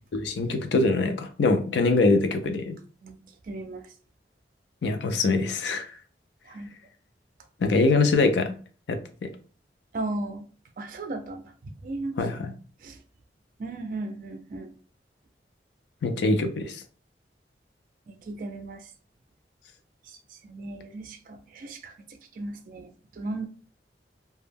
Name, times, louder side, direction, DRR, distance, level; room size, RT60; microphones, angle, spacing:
voice 1, 0.1-2.8 4.8-5.9 7.6-8.5 8.9-9.3 12.2-12.5 16.0-16.8, left 3 dB, 80° left, 7 dB, 0.4 m, -23 dB
voice 2, 3.5-3.8 6.5-6.7 9.9-10.4 10.8-12.2 12.8-13.0 13.6-14.7 18.1-18.8 20.5-21.9 22.4-23.5, right 2 dB, 50° right, 7 dB, 0.3 m, -36 dB
2.2 x 2.0 x 3.3 m, 0.40 s
head